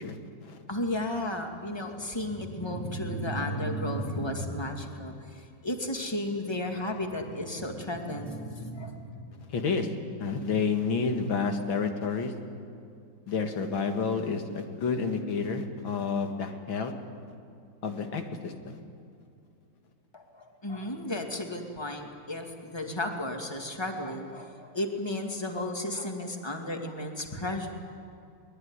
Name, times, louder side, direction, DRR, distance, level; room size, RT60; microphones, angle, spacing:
voice 1, 0.0-0.6 9.5-9.9 10.2-12.3 13.3-16.9 17.8-18.8, left 5 dB, 85° left, 5 dB, 2.6 m, -30 dB
voice 2, 0.7-9.3 20.1-27.7, left 1 dB, 15° left, 3 dB, 2.2 m, -33 dB
22.5 x 20.0 x 9.7 m, 2.4 s
omnidirectional pair, 2.1 m